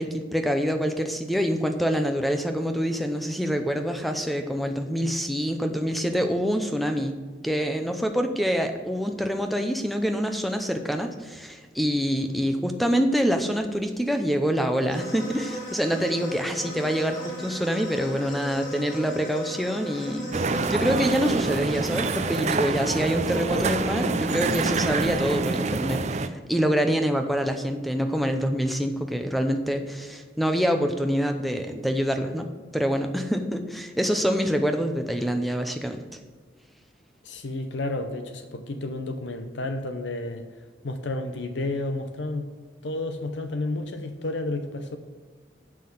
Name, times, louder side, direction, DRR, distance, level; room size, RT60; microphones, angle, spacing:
voice 1, 0.0-7.2 7.4-32.5 32.7-36.0, equal, ahead, 6 dB, 0.6 m, -26 dB
sound 1, 14.9-22.5, right 1 dB, 40° left, 2.1 m, -38 dB
sound 2, 20.3-26.3, right 3 dB, 35° right, 0.4 m, -26 dB
voice 2, 37.2-40.4 40.8-42.5 42.8-45.0, left 2 dB, 80° left, 7 dB, 0.7 m, -31 dB
7.5 x 5.9 x 7.1 m, 1.5 s
head